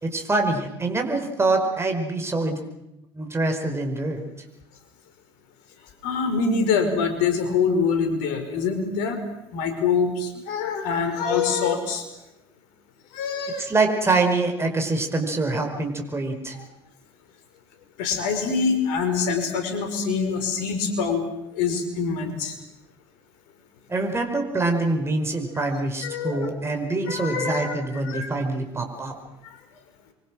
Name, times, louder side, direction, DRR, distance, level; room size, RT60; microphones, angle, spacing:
voice 1, 0.0-2.6 3.2-4.2 13.6-16.6 23.9-29.1, right 3 dB, 20° right, 4 dB, 5.2 m, -25 dB
voice 2, 6.0-9.2 9.5-12.0 13.1-13.7 18.0-21.2 21.5-22.5 26.0-26.5 27.1-27.7 28.0-28.3, left 5 dB, 65° left, 7 dB, 5.1 m, -25 dB
27.5 x 24.0 x 6.3 m, 0.89 s
hypercardioid pair, 65°, 14 cm